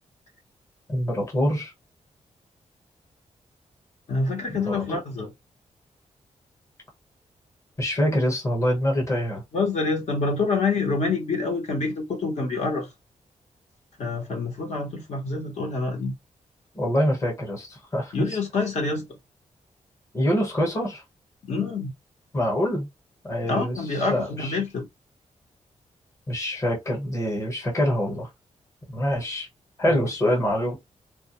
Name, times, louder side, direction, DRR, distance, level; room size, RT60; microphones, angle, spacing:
voice 1, 0.9-1.7 4.5-5.0 7.8-9.4 16.7-18.1 20.1-21.0 22.3-22.9 23.2-24.6 26.3-28.3 28.9-29.5 29.8-30.8, equal, 25° left, 1.0 m, -25 dB
voice 2, 4.1-5.3 9.5-12.9 14.0-16.1 18.1-19.1 21.5-21.9 23.5-24.9 29.9-30.0, left 3 dB, 65° left, 1.0 m, -26 dB
2.3 x 2.2 x 2.9 m
wide cardioid pair, 170°, 13 cm